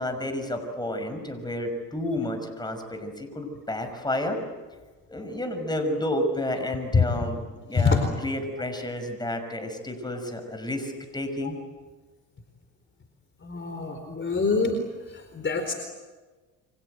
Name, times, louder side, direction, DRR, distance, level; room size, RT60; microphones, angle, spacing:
voice 1, 0.0-4.4 5.1-7.4 7.7-11.5, left 1 dB, 10° left, 6 dB, 6.0 m, -30 dB
voice 2, 13.4-14.8 15.1-15.7, left 4 dB, 30° left, 5 dB, 4.3 m, -24 dB
29.0 x 25.5 x 8.1 m, 1.3 s
supercardioid pair, 85°, 37 cm